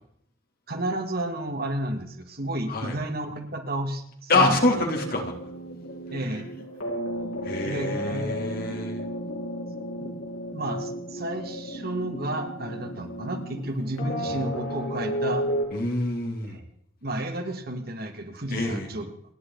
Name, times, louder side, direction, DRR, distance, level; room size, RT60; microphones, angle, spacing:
voice 1, 0.7-4.6 6.1-6.6 7.6-8.8 10.0-10.1 10.5-15.5 16.5-16.6 17.0-19.1, right 1 dB, 50° right, 5 dB, 2.4 m, -32 dB
voice 2, 4.3-5.3 7.4-9.0 14.3-14.4 15.7-16.6 18.5-18.9, left 2 dB, 45° left, 2 dB, 3.6 m, -26 dB
sound 1, 4.6-15.6, equal, 80° left, 5.2 m, -33 dB
29.0 x 11.0 x 4.2 m, 0.69 s
head